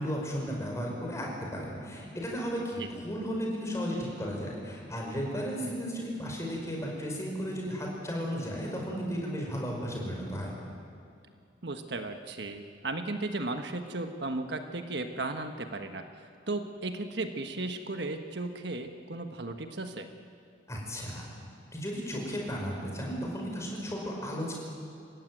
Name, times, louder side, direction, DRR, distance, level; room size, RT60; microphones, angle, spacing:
voice 1, 0.0-10.5 20.7-21.2 21.7-24.5, equal, 15° left, -1 dB, 5.1 m, -34 dB
voice 2, 11.6-20.1, right 2 dB, 65° right, 7 dB, 1.4 m, -35 dB
28.0 x 15.5 x 9.4 m, 2.4 s
head